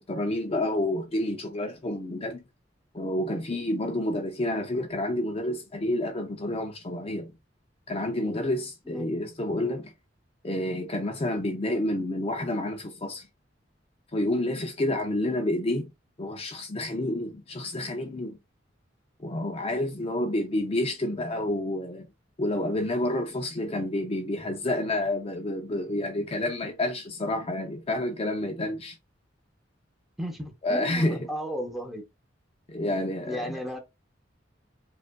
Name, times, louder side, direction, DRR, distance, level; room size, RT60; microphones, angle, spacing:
voice 1, 0.0-2.4 2.9-7.3 7.9-9.9 10.4-13.3 14.1-15.9 16.2-18.4 19.2-22.1 22.4-29.0 30.6-31.3 32.7-33.6, left 1 dB, 30° left, 0.5 m, -29 dB
voice 2, 8.9-9.3 30.2-32.0 33.2-33.8, equal, ahead, 0.9 m, -35 dB
5.0 x 2.5 x 2.2 m
head